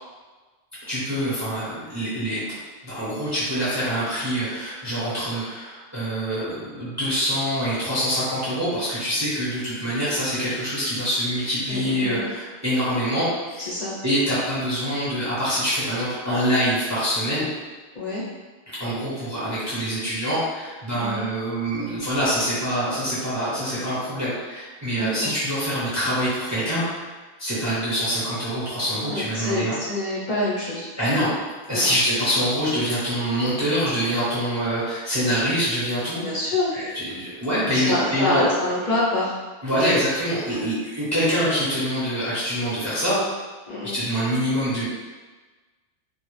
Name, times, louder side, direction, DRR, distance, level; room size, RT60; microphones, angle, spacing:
voice 1, 0.9-2.4 2.8-13.7 14.0-17.5 18.8-27.1 27.4-29.8 31.0-31.3 31.7-36.2 36.7-38.4 39.6-43.2 43.9-44.8, equal, 20° right, -11 dB, 0.6 m, -25 dB
voice 2, 11.7-12.3 13.6-13.9 17.9-18.2 21.0-21.2 24.9-25.3 29.1-30.9 31.1-31.3 31.7-31.9 36.1-36.7 37.7-39.3 39.7-39.9 40.5-40.7 43.7-44.0, left 2 dB, 50° left, -8 dB, 0.7 m, -27 dB
2.0 x 2.0 x 2.9 m, 1.3 s
omnidirectional pair, 1.1 m